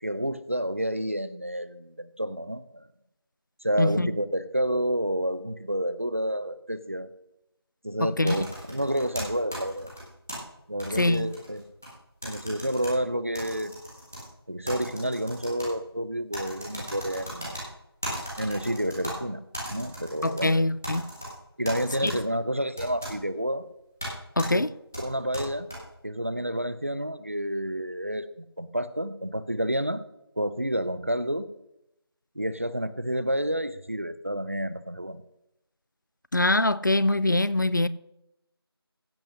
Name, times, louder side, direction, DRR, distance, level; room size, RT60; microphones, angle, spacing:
voice 1, 0.0-2.9 3.6-7.1 7.8-9.9 10.7-11.6 12.2-13.7 14.5-17.6 18.4-19.4 19.7-20.5 21.6-23.6 24.5-24.6 25.0-25.7 26.0-30.0 30.4-31.5 32.4-35.2, equal, 30° right, 0.6 m, -29 dB
voice 2, 3.8-4.1 8.0-8.4 11.0-11.3 20.2-21.0 22.0-22.1 24.4-24.7 36.3-37.9, left 2 dB, 50° left, 0.5 m, -23 dB
sound 1, 8.3-10.4 10.8-11.9 12.2-12.9 13.3-14.2 14.6-15.7 16.3-17.6 18.0-19.1 19.5-20.5 20.8-21.3 21.6-22.2 22.8-23.1 24.0-24.1 24.4-24.5 24.9-25.8, equal, 5° left, 0.9 m, -36 dB
16.0 x 5.7 x 6.4 m
figure-of-eight pair, 175°, 13 cm